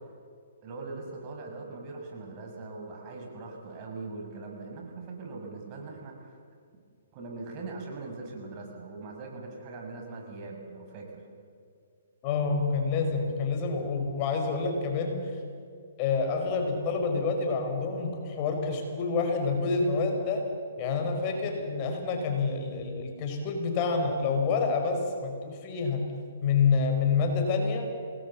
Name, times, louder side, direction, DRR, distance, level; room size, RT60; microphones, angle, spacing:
voice 1, 0.6-6.4 7.1-11.2, right 3 dB, 40° right, 1 dB, 6.7 m, -41 dB
voice 2, 12.2-15.4 16.0-20.5 20.8-26.1 26.4-27.9, left 4 dB, 35° left, 3 dB, 5.1 m, -28 dB
27.5 x 19.5 x 7.3 m, 2.3 s
hypercardioid pair, 135°, 0 cm